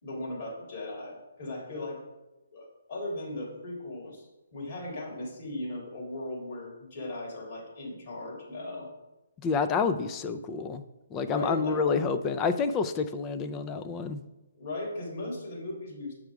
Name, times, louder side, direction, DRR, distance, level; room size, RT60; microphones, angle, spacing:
voice 1, 0.0-2.0 2.5-4.3 4.5-8.9 11.2-12.0 14.6-16.1, left 1 dB, 50° left, -4 dB, 3.1 m, -37 dB
voice 2, 9.4-10.8 11.1-14.2, left 5 dB, 20° left, 9 dB, 0.5 m, -28 dB
8.1 x 4.9 x 4.8 m, 1.0 s
hypercardioid pair, 145°, 0 cm